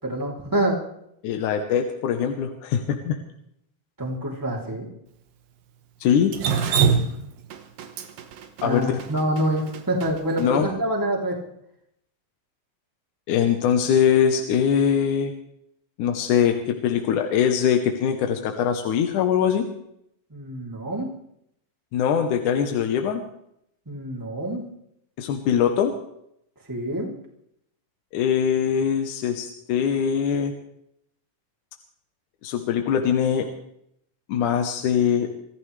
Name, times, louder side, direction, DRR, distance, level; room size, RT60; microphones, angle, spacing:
voice 1, 0.0-0.8 4.0-4.9 8.6-11.4 20.3-21.1 23.9-24.6 26.7-27.1, right 1 dB, 5° right, -2 dB, 2.6 m, -26 dB
voice 2, 1.2-3.2 6.0-6.4 8.6-8.9 10.4-10.7 13.3-15.3 16.0-19.7 21.9-23.2 25.2-26.0 28.1-30.5 32.4-33.5 34.3-35.3, left 8 dB, 70° left, 4 dB, 2.4 m, -22 dB
Drip, 6.3-10.5, right 6 dB, 85° right, 3.0 m, -24 dB
25.5 x 14.5 x 3.3 m, 0.75 s
omnidirectional pair, 3.9 m